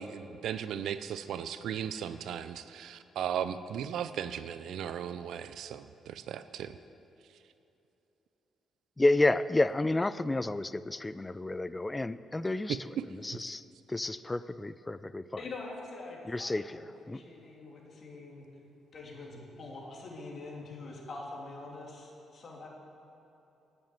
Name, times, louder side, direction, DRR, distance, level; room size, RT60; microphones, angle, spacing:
voice 1, 0.0-6.8, right 9 dB, 75° right, 13 dB, 0.4 m, -37 dB
voice 2, 9.0-13.6 13.9-15.3 16.3-17.2, left 2 dB, 15° left, 16 dB, 0.4 m, -30 dB
voice 3, 15.4-18.4 18.9-22.7, left 3 dB, 45° left, -2 dB, 3.0 m, -44 dB
10.0 x 7.8 x 9.1 m, 2.9 s
cardioid pair, 90°, 0 cm